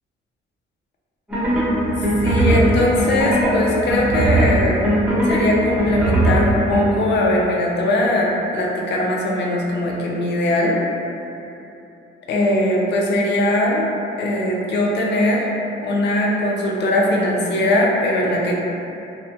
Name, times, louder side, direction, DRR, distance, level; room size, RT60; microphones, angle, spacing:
sound 1, 1.3-6.8, right 1 dB, 5° right, 0.8 m, -19 dB
voice 1, 2.2-4.8 5.2-10.8 12.3-13.8 14.2-15.4 15.8-18.6, left 1 dB, 60° left, -2 dB, 0.5 m, -20 dB
2.5 x 2.1 x 2.6 m, 2.8 s
cardioid pair, 90°, 20 cm